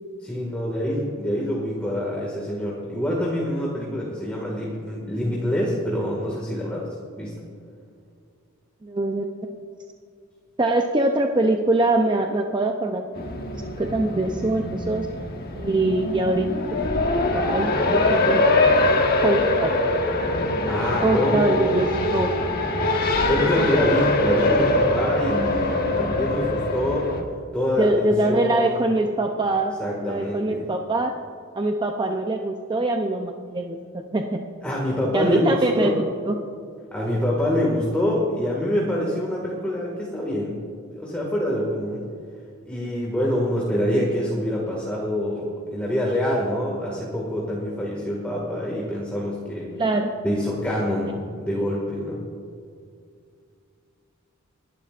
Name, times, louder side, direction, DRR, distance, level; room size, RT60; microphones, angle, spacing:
voice 1, 0.2-6.9 7.2-7.4 20.7-21.7 23.3-27.1 27.5-28.8 29.8-30.7 34.6-36.0 36.9-40.5 40.9-42.0 42.6-49.7 50.2-52.2, left 1 dB, 5° left, -4 dB, 1.9 m, -25 dB
voice 2, 8.8-9.7 10.6-13.3 13.8-15.1 15.6-16.5 17.3-18.4 18.7-19.8 21.0-22.3 27.8-29.7 30.0-31.1 31.5-33.8 34.1-34.4 35.1-35.9 36.3-36.4 49.8-50.1, right 2 dB, 20° right, 3 dB, 0.6 m, -23 dB
Race car auto racing, 13.2-27.2, left 2 dB, 45° left, 1.4 m, -23 dB
26.0 x 11.5 x 2.5 m, 2.3 s
head